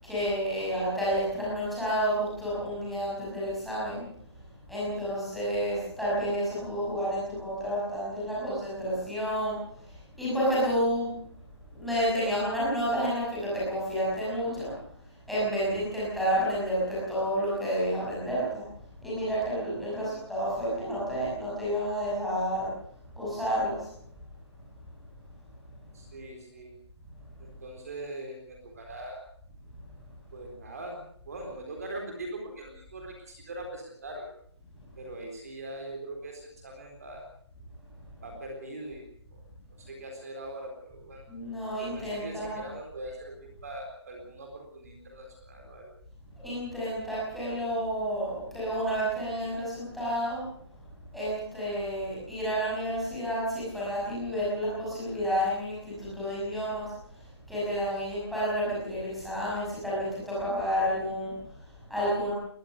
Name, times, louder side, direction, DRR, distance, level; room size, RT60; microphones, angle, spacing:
voice 1, 0.0-4.1 4.7-11.1 11.7-14.7 15.1-18.6 19.0-22.7 23.2-23.9 41.3-42.7 46.4-50.5 51.1-62.3, equal, ahead, -9 dB, 5.9 m, -30 dB
voice 2, 19.8-20.3 25.9-26.7 27.4-29.2 30.3-34.3 35.0-37.3 38.2-39.1 39.3-39.4 39.8-41.2 41.8-45.9, right 1 dB, 35° right, 2 dB, 4.1 m, -41 dB
21.5 x 19.0 x 6.6 m, 0.63 s
hypercardioid pair, 180°, 15 cm